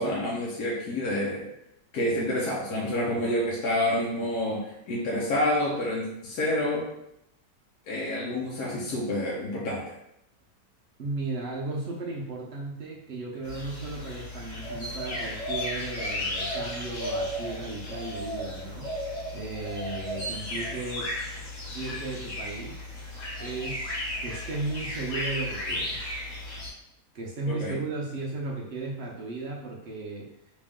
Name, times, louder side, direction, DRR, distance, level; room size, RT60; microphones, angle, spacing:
voice 1, 0.0-1.5 1.9-6.9 7.9-9.8 27.5-27.8, left 1 dB, 70° left, -4 dB, 1.2 m, -28 dB
voice 2, 11.0-21.3 21.7-22.8 23.4-23.9 24.2-26.1 27.1-30.3, right 3 dB, 70° right, -2 dB, 0.6 m, -35 dB
sound 1, 13.4-26.7, left 1 dB, 50° left, 1.3 m, -34 dB
3.3 x 2.9 x 3.5 m, 0.80 s
omnidirectional pair, 1.8 m